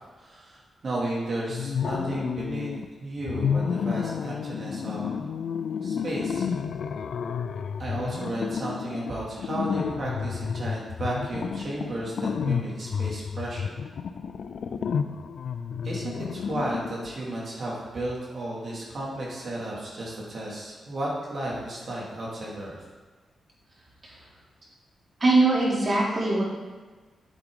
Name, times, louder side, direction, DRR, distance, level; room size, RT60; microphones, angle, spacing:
voice 1, 0.2-2.7 3.0-5.2 5.8-6.4 7.8-13.7 15.8-22.8, right 1 dB, 55° right, -5 dB, 2.5 m, -33 dB
sound 1, 1.5-2.9 3.2-17.1, left 6 dB, 75° left, 0.4 m, -31 dB
voice 2, 25.2-26.4, right 2 dB, 35° right, -5 dB, 3.1 m, -21 dB
8.6 x 8.2 x 3.8 m, 1.3 s
cardioid pair, 100°, 0 cm